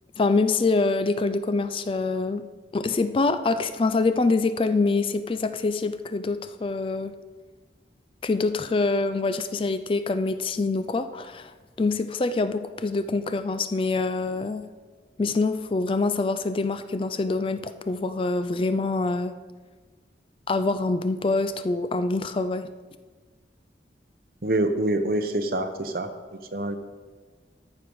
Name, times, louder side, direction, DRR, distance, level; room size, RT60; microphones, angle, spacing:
voice 1, 0.2-2.5 2.7-7.2 8.2-11.5 11.8-14.7 15.2-19.3 20.5-22.7, left 3 dB, 30° left, 11 dB, 0.3 m, -25 dB
voice 2, 24.4-26.1 26.5-26.8, right 1 dB, 55° right, 7 dB, 0.8 m, -25 dB
13.5 x 5.2 x 4.7 m, 1.4 s
head